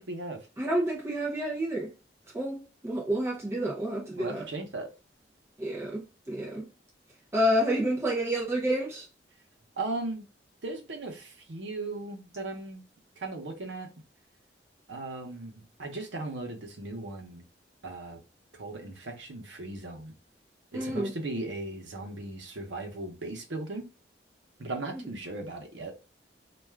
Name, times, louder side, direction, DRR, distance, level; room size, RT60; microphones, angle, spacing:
voice 1, 0.0-0.5 4.2-4.9 9.8-10.3 10.6-12.8 13.2-13.9 14.9-17.4 17.8-18.2 18.6-20.1 20.7-23.9 24.6-25.9, right 2 dB, 90° right, 0.8 m, -37 dB
voice 2, 0.6-1.9 2.3-4.5 5.6-6.7 7.3-9.0 20.7-21.1 24.9-25.0, equal, 15° right, 0.6 m, -29 dB
2.4 x 2.3 x 3.2 m
head